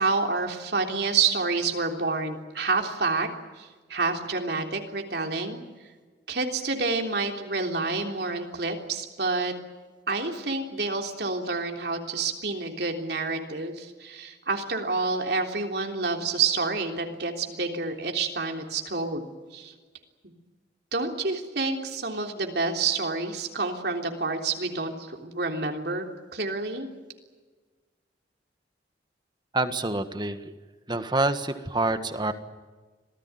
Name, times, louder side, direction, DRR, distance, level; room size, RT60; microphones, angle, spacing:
voice 1, 0.0-3.3 3.6-5.6 6.3-9.5 10.1-19.2 19.5-19.7 20.9-26.1 26.3-26.9, right 4 dB, 65° right, 3 dB, 3.5 m, -28 dB
voice 2, 29.5-30.4 30.9-32.3, right 2 dB, 25° right, 9 dB, 1.6 m, -26 dB
26.5 x 18.0 x 9.6 m, 1.4 s
head